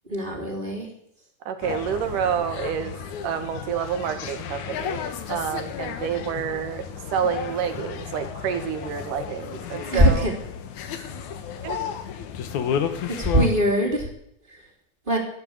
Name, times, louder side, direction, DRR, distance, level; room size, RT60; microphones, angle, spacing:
voice 1, 0.1-0.9 9.9-10.3 10.9-11.1 13.2-14.1 15.1-15.2, equal, 15° right, 1 dB, 3.2 m, -21 dB
voice 2, 1.5-2.9 3.2-5.0 5.3-6.9 7.1-10.3 11.6-11.8, right 8 dB, 85° right, 8 dB, 3.1 m, -28 dB
sound 1, 1.6-13.6, left 8 dB, 70° left, 2.6 m, -33 dB
13.0 x 12.5 x 8.7 m, 0.71 s
omnidirectional pair, 3.6 m